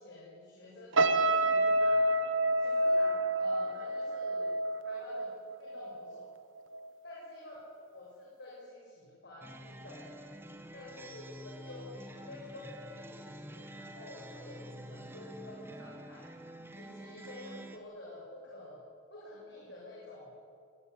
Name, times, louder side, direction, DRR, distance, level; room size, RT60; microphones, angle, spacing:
voice 1, 0.0-2.2 2.6-4.5 4.8-5.3 5.6-6.3 7.0-10.3 10.7-16.3 16.7-18.8 19.1-20.3, left 2 dB, 65° left, -5 dB, 6.9 m, -49 dB
sound 1, 0.9-6.2 6.6-6.9, right 1 dB, 85° right, 1.4 m, -29 dB
sound 2, 9.4-17.8, right 1 dB, 10° right, 1.5 m, -48 dB
22.0 x 18.0 x 9.8 m, 2.2 s
head